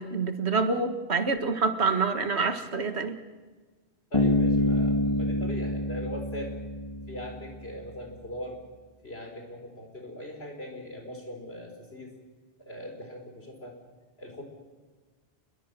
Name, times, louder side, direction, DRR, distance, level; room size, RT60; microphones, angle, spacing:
voice 1, 0.0-3.2, right 4 dB, 80° right, 8 dB, 2.0 m, -27 dB
voice 2, 4.1-6.6 7.1-8.6 9.0-12.1 12.6-13.8 14.2-14.4, equal, 70° left, 3 dB, 4.8 m, -40 dB
Bass guitar, 4.1-7.6, left 1 dB, 30° left, 1.8 m, -27 dB
28.5 x 22.0 x 6.9 m, 1.3 s
omnidirectional pair, 1.1 m